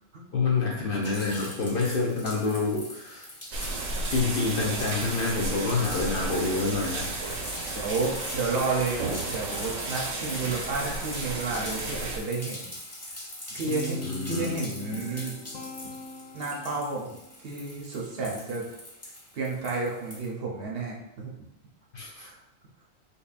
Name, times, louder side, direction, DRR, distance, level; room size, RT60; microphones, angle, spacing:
voice 1, 0.3-3.3 4.1-7.3 14.0-14.6 21.9-22.3, left 3 dB, 60° left, -2 dB, 0.6 m, -27 dB
sound 1, 1.0-20.3, left 1 dB, 20° left, 0.4 m, -42 dB
sound 2, 3.5-12.2, right 2 dB, 90° right, 1.0 m, -33 dB
voice 2, 7.7-12.8 13.5-14.0 14.3-15.3 16.3-17.2 17.4-18.6 19.3-21.3 22.2-22.4, right 3 dB, 60° right, -2 dB, 0.8 m, -31 dB
Guitar, 13.7-16.9, left 3 dB, 90° left, 1.0 m, -39 dB
5.2 x 2.2 x 2.4 m, 0.87 s
omnidirectional pair, 1.3 m